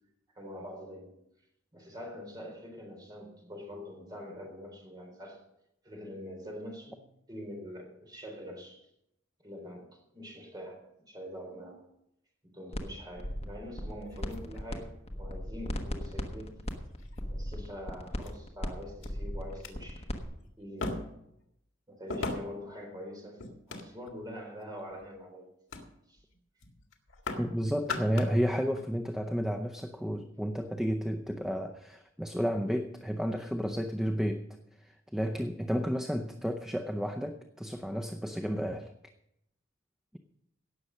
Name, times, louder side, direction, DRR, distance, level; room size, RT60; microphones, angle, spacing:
voice 1, 0.3-1.2 1.7-5.4 5.8-8.9 9.4-11.9 12.4-14.9 15.2-16.5 17.3-20.1 20.6-21.0 21.9-23.4 23.7-25.5 26.1-26.2, equal, 20° right, 1 dB, 3.8 m, -44 dB
sound 1, 12.7-12.9 13.2-14.8 15.0-20.2, equal, 30° left, 1.3 m, -36 dB
sound 2, 14.0-15.1 16.0-16.1 16.7-17.3 18.2-18.3 19.0-19.1 19.5-19.7 20.8-21.3 22.1-22.7 23.4-24.2 24.8-25.1 25.7-25.9 26.2-26.4 26.6-27.5 27.8-28.4 28.7-28.9, left 3 dB, 75° left, 2.0 m, -39 dB
voice 2, 27.4-34.5 34.8-38.9, equal, 5° right, 5 dB, 0.6 m, -32 dB
17.5 x 6.8 x 6.4 m, 0.81 s
head